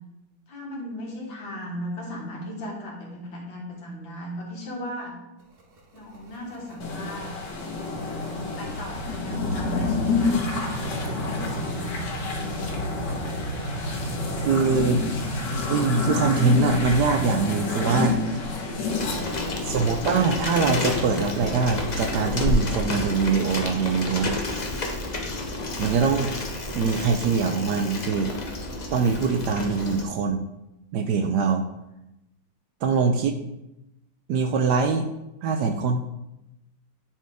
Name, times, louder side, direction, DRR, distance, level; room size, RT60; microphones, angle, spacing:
voice 1, 0.5-5.2 5.9-7.3 8.2-10.4 11.0-12.3 19.4-19.8, equal, 85° left, -2 dB, 2.4 m, -36 dB
sound 1, 5.4-24.2, right 2 dB, 40° right, 0.9 m, -36 dB
sound 2, 6.8-22.5, left 3 dB, 65° left, 1.7 m, -29 dB
voice 2, 14.5-15.0 15.7-18.2 19.6-24.4 25.8-26.3 26.7-28.3 28.9-30.4 30.9-31.6 32.8-33.4 34.3-35.1 35.4-36.2, right 5 dB, 75° right, 6 dB, 1.0 m, -23 dB
Bicycle, 18.9-30.0, left 2 dB, 50° left, 0.5 m, -31 dB
10.0 x 4.5 x 3.5 m, 0.92 s
omnidirectional pair, 2.1 m